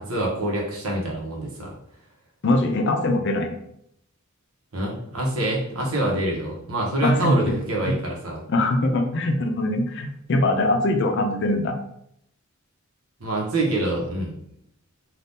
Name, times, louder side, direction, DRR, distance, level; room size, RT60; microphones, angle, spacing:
voice 1, 0.0-1.7 4.7-8.4 13.2-14.4, right 1 dB, 80° right, -1 dB, 0.9 m, -26 dB
voice 2, 2.4-3.5 7.0-7.9 8.5-11.8, left 1 dB, 55° left, 4 dB, 0.5 m, -22 dB
2.7 x 2.4 x 3.5 m, 0.73 s
head